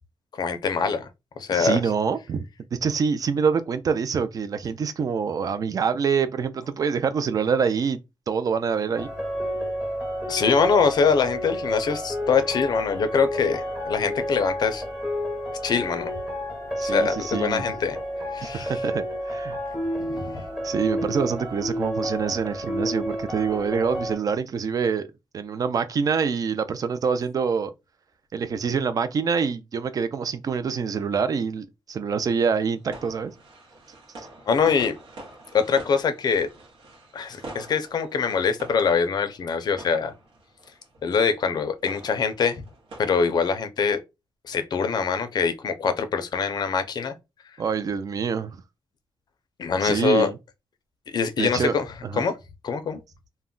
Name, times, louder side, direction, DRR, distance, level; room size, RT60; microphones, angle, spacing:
voice 1, 0.4-1.1 1.4-1.8 10.3-14.8 15.6-16.1 16.8-18.0 18.3-18.7 20.1-20.4 34.5-35.0 35.5-36.5 37.1-40.1 41.0-42.6 43.0-44.0 44.5-47.1 49.6-50.3 51.1-51.9 52.2-52.3 52.6-53.0, left 5 dB, 50° left, 0.4 m, -23 dB
voice 2, 1.5-2.4 2.7-8.0 8.3-9.1 16.8-17.6 18.4-19.6 20.6-25.1 25.3-27.7 28.3-33.3 34.2-34.3 47.6-48.6 49.8-50.4 51.4-52.2, right 6 dB, 40° right, 0.4 m, -26 dB
sound 1, 9.0-24.2, equal, 10° right, 0.7 m, -30 dB
sound 2, 32.2-43.0, right 2 dB, 80° right, 0.8 m, -45 dB
2.2 x 2.1 x 3.6 m
wide cardioid pair, 135°, 9 cm